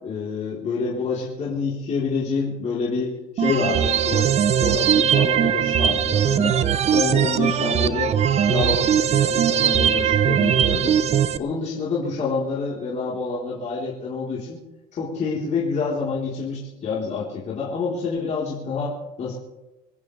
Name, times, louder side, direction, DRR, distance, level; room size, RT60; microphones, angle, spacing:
voice 1, 0.0-6.6 6.9-8.2 8.5-11.0 11.4-14.6 14.9-19.3, left 4 dB, 40° left, -6 dB, 4.1 m, -27 dB
sound 1, 3.4-11.4, right 8 dB, 35° right, 0.8 m, -20 dB
26.0 x 15.5 x 3.4 m, 0.99 s
cardioid pair, 130°, 18 cm